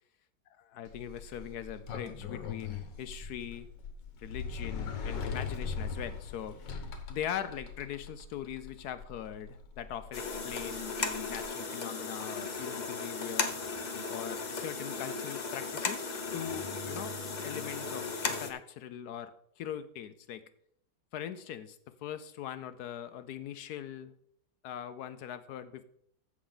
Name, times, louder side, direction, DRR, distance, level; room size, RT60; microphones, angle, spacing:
voice 1, 0.7-3.7 4.2-6.6 7.1-13.6 14.1-17.2 17.4-20.4 21.1-24.1 24.6-25.8, left 10 dB, 70° left, 12 dB, 1.0 m, -41 dB
Sliding door, 0.9-11.4, left 5 dB, 85° left, 1.8 m, -41 dB
sound 1, 10.1-18.5, left 4 dB, 40° left, 0.7 m, -36 dB
15.0 x 6.2 x 3.8 m, 0.69 s
omnidirectional pair, 1.9 m